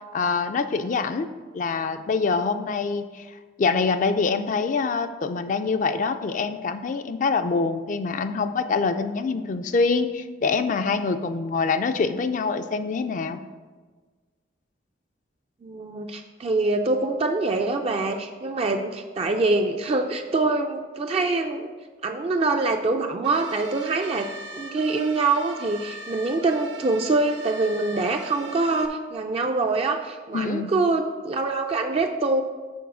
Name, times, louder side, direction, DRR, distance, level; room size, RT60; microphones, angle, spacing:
voice 1, 0.1-1.3 1.5-3.3 3.6-13.4 30.3-30.7, left 4 dB, 45° left, 9 dB, 0.4 m, -25 dB
voice 2, 15.6-21.7 22.0-24.3 24.6-32.4, right 3 dB, 35° right, 4 dB, 0.4 m, -24 dB
sound 1, 23.2-28.9, right 1 dB, 85° right, 0.8 m, -41 dB
7.0 x 4.2 x 6.0 m, 1.4 s
head